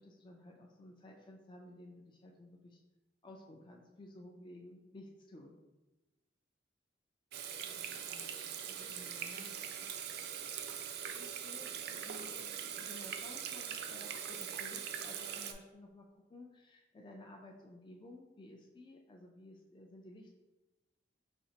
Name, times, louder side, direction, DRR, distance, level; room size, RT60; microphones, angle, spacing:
voice 1, 0.0-2.8 3.2-5.6 7.6-8.0 8.8-9.0 11.0-20.3, left 1 dB, 25° left, 0 dB, 0.3 m, -55 dB
Water tap faucet / Sink (filling or washing), 7.3-15.5, right 8 dB, 60° right, 0.3 m, -42 dB
voice 2, 7.8-9.9, left 1 dB, 75° left, 0 dB, 0.8 m, -59 dB
4.2 x 2.8 x 2.8 m, 1.1 s
head